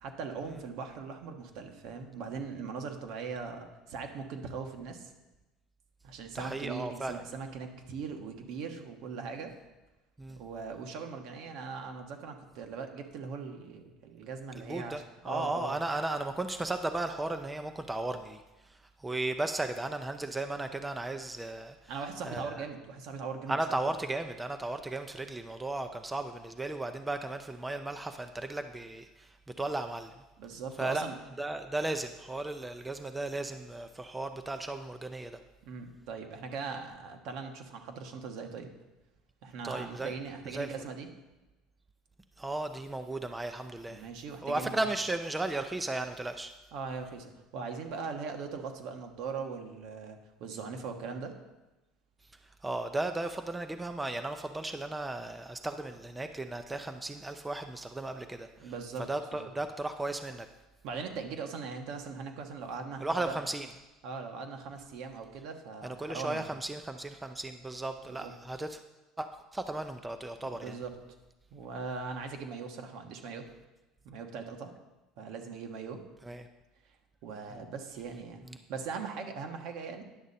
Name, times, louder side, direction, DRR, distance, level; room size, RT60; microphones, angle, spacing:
voice 1, 0.0-5.1 6.0-9.5 10.3-15.8 21.9-23.8 30.4-31.2 35.6-38.7 39.4-41.1 43.9-44.8 46.7-51.3 58.6-59.5 60.8-63.4 64.0-66.5 68.1-68.3 70.4-71.0 71.5-73.4 74.0-74.7 75.2-76.0 77.2-78.4 78.7-80.0, right 5 dB, 70° right, 4 dB, 1.2 m, -40 dB
voice 2, 6.3-7.2 10.2-10.4 14.5-18.4 18.7-21.9 22.2-22.6 23.5-29.3 29.6-30.1 30.8-31.1 31.4-35.4 39.6-40.1 40.5-40.7 42.4-44.1 44.4-46.5 52.6-58.7 59.1-60.5 63.0-63.7 65.8-68.8 69.2-70.8 76.2-76.5 78.4-78.6, right 2 dB, 10° right, 7 dB, 0.5 m, -35 dB
10.0 x 6.4 x 4.1 m, 1.1 s
supercardioid pair, 110°, 0 cm